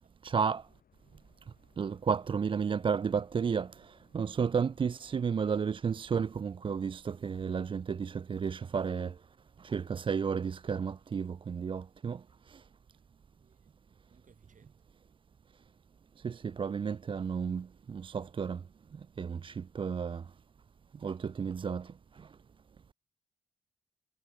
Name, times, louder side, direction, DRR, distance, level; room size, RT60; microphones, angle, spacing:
voice 1, 0.2-0.6 1.8-3.7 4.1-9.1 9.6-12.2 16.2-18.6 19.2-20.2 21.0-21.9, right 6 dB, 30° right, 0.4 m, -32 dB
sound 1, 0.6-5.7, left 8 dB, 60° left, 4.6 m, -69 dB
voice 2, 13.3-13.7 14.1-14.9, right 6 dB, 50° right, 7.4 m, -65 dB
cardioid pair, 65°, 17 cm